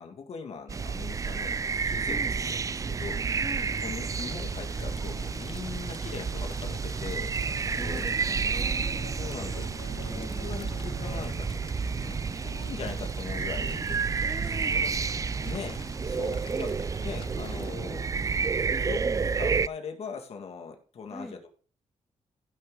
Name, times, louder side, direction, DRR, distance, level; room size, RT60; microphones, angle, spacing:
voice 1, 0.0-3.2 3.8-7.3 7.8-8.0 9.2-9.7 9.9-14.0 14.7-14.9 15.4-16.7 17.0-18.1 18.8-21.5, left 6 dB, 65° left, 4 dB, 2.2 m, -41 dB
sound 1, 0.7-19.7, right 5 dB, 30° right, 0.4 m, -30 dB
voice 2, 2.1-2.4 3.4-3.7 7.7-9.0 10.1-10.6 14.2-14.7 16.5-16.7 18.7-19.2 21.1-21.4, equal, ahead, 3 dB, 1.2 m, -42 dB
sound 2, 3.5-17.7, left 6 dB, 45° left, 0.8 m, -48 dB
Bowed string instrument, 7.5-12.4, left 4 dB, 80° left, 2.8 m, -46 dB
15.5 x 6.1 x 3.9 m, 0.41 s
cardioid pair, 100°, 12 cm